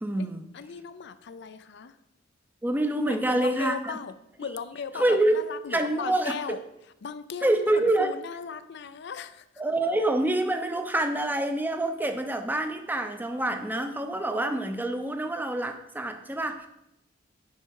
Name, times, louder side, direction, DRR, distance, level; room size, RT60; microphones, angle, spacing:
voice 1, 0.0-0.5 2.6-3.9 5.0-5.4 5.7-6.6 7.4-8.1 9.6-16.7, right 1 dB, 10° right, 6 dB, 0.7 m, -26 dB
voice 2, 0.5-2.0 3.0-6.6 7.0-9.4, left 6 dB, 60° left, 12 dB, 0.5 m, -37 dB
9.4 x 5.6 x 4.7 m, 0.85 s
head